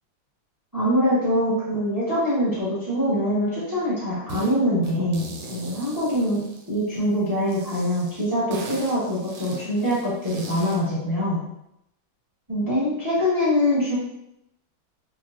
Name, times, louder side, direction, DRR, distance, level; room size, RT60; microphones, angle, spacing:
voice 1, 0.7-6.4 6.7-11.4 12.5-13.9, equal, 25° right, -8 dB, 0.4 m, -24 dB
sound 1, 4.3-4.5 4.8-7.0 7.5-10.9, right 2 dB, 90° right, 1.4 m, -39 dB
4.3 x 2.1 x 2.4 m, 0.82 s
omnidirectional pair, 2.1 m